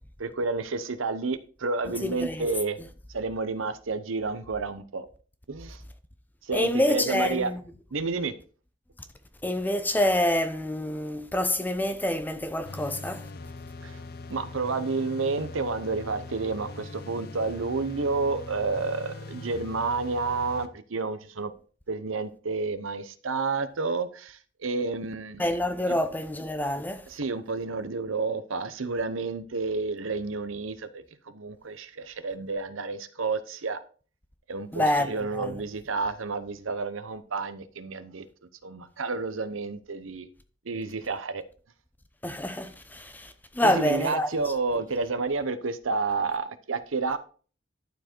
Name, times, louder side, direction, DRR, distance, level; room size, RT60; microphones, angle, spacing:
voice 1, 0.2-2.8 3.1-5.1 5.5-5.8 6.4-7.5 7.9-8.3 13.8-14.0 14.3-21.5 21.9-25.4 25.9-26.0 27.1-33.8 34.5-38.2 38.6-40.3 40.6-41.4 43.6-47.2, right 4 dB, 90° right, 0.8 m, -30 dB
voice 2, 2.0-2.5 6.5-7.6 9.4-13.3 25.4-27.1 34.7-35.5 42.2-44.3, left 1 dB, 10° left, 0.6 m, -27 dB
sound 1, 12.7-20.7, left 3 dB, 50° left, 0.7 m, -41 dB
11.5 x 4.7 x 4.5 m
head